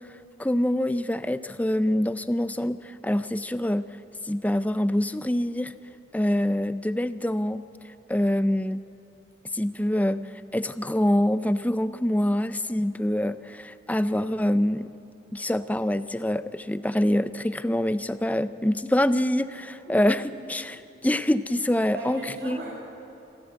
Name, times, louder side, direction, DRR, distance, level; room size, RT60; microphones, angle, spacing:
voice 1, 0.4-2.8 3.0-3.9 4.3-5.7 6.1-7.6 8.1-8.8 9.5-10.2 10.5-14.9 15.3-20.8 21.0-22.6, left 1 dB, 10° left, 13 dB, 0.5 m, -25 dB
voice 2, 20.0-20.4 21.9-22.7, right 1 dB, 65° right, -5 dB, 7.3 m, -37 dB
26.0 x 14.0 x 8.2 m, 2.7 s
head